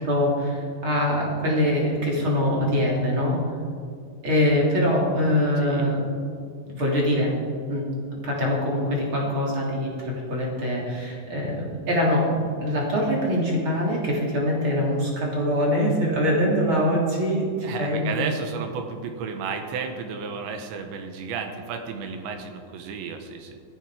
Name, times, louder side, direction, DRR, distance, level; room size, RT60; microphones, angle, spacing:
voice 1, 0.0-3.4 4.2-6.0 6.7-7.3 7.7-7.8 8.2-17.5 17.8-18.3, equal, 30° right, -3 dB, 3.2 m, -23 dB
voice 2, 5.6-5.9 17.6-23.6, right 5 dB, 75° right, 5 dB, 3.2 m, -33 dB
19.5 x 14.0 x 5.1 m, 2.2 s
omnidirectional pair, 5.8 m